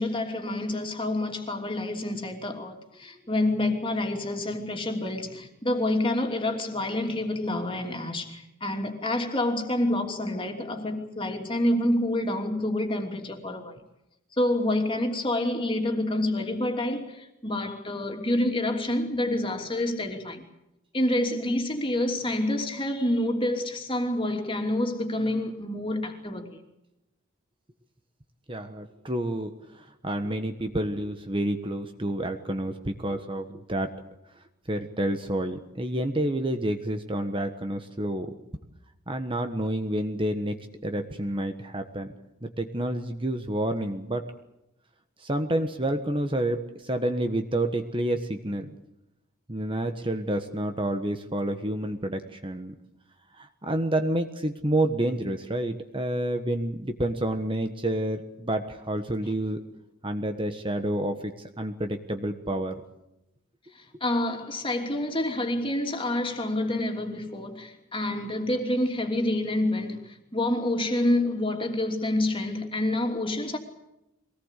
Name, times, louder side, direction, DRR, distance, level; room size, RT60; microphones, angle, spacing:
voice 1, 0.0-13.8 14.3-20.4 20.9-26.6 63.7-73.6, left 1 dB, 25° left, 3.1 m, -28 dB
voice 2, 28.5-33.9 34.7-38.3 39.1-40.6 40.8-42.1 42.4-44.3 45.2-48.7 49.5-52.7 53.4-59.6 60.0-62.8, right 1 dB, 25° right, 1.3 m, -29 dB
24.0 x 19.0 x 8.3 m
head